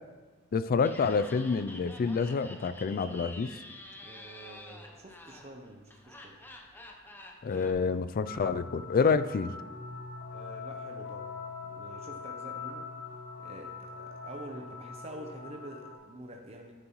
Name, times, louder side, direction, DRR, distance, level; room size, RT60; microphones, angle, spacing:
voice 1, 0.5-3.6 7.4-9.5, left 5 dB, 45° left, 14 dB, 0.3 m, -28 dB
Laughter, 0.8-7.7, left 1 dB, 10° left, 0.8 m, -48 dB
voice 2, 4.0-6.4 10.3-11.3 11.6-13.1 13.4-16.7, right 1 dB, 30° right, 1 dB, 0.8 m, -47 dB
sound 1, 8.3-16.0, left 4 dB, 80° left, 1.7 m, -42 dB
9.9 x 9.4 x 3.1 m, 1.4 s
head